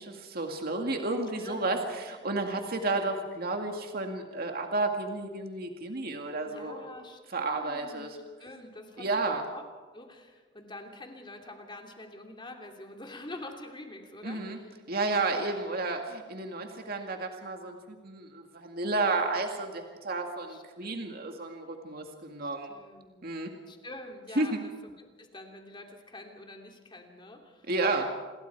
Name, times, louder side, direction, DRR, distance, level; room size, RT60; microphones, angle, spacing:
voice 1, 0.0-6.8 7.3-8.2 9.0-9.4 14.2-14.6 14.9-22.7 23.2-23.5 24.4-24.6 27.7-28.1, right 3 dB, 55° right, 3 dB, 2.1 m, -32 dB
voice 2, 1.4-1.9 2.3-2.8 3.1-3.3 6.4-8.1 8.4-9.6 9.9-14.7 20.5-21.0 22.4-23.3 23.7-27.7, left 2 dB, 25° left, 3 dB, 2.9 m, -46 dB
28.0 x 22.0 x 4.7 m, 1.4 s
head